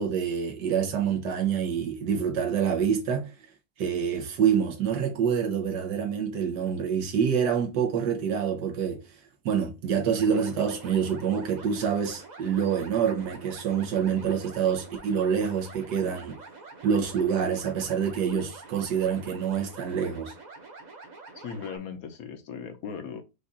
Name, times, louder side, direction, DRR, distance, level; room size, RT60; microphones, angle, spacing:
voice 1, 0.0-3.3 3.8-9.0 9.4-16.4 16.8-20.3, right 7 dB, 90° right, 1.5 m, -26 dB
sound 1, 10.2-21.8, right 3 dB, 35° right, 0.7 m, -46 dB
voice 2, 21.4-23.2, left 6 dB, 65° left, 1.2 m, -38 dB
5.0 x 2.4 x 4.0 m
omnidirectional pair, 1.8 m